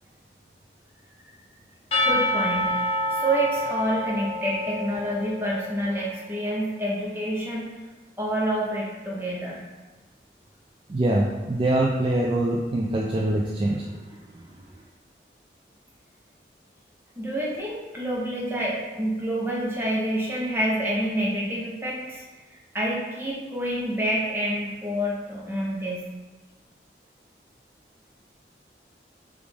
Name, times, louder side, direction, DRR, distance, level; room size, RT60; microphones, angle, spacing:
Percussion / Church bell, 1.9-5.8, left 1 dB, 30° left, 1.0 m, -27 dB
voice 1, 2.0-7.7 8.2-9.6 17.2-22.2 22.5-26.1, right 1 dB, 15° right, -5 dB, 0.8 m, -28 dB
voice 2, 10.9-14.5, right 1 dB, 30° right, -3 dB, 0.3 m, -24 dB
5.1 x 2.5 x 3.4 m, 1.2 s
head